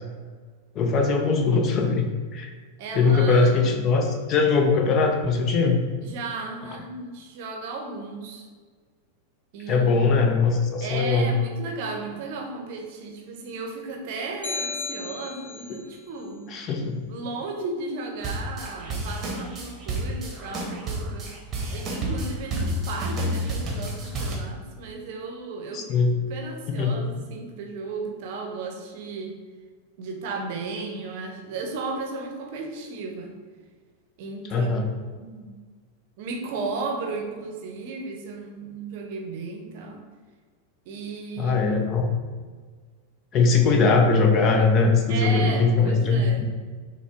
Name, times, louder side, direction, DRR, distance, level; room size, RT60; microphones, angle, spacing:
voice 1, 0.7-2.5 2.9-5.8 9.7-11.3 16.5-17.0 25.7-26.1 26.8-27.0 34.5-34.9 41.4-42.1 43.3-46.5, left 4 dB, 35° left, 3 dB, 0.6 m, -21 dB
voice 2, 2.8-3.9 6.0-8.5 9.5-9.9 10.8-16.6 17.0-21.3 21.7-26.0 26.3-29.4 30.0-33.4 34.2-34.7 35.1-35.5 36.2-40.0 40.9-41.7 45.1-46.5, right 3 dB, 50° right, 2 dB, 0.7 m, -35 dB
sound 1, 14.4-15.8, left 4 dB, 70° left, 0.9 m, -33 dB
sound 2, 18.2-24.4, right 1 dB, 25° right, 1.0 m, -30 dB
6.2 x 2.2 x 3.4 m, 1.5 s
figure-of-eight pair, 90°, 0 cm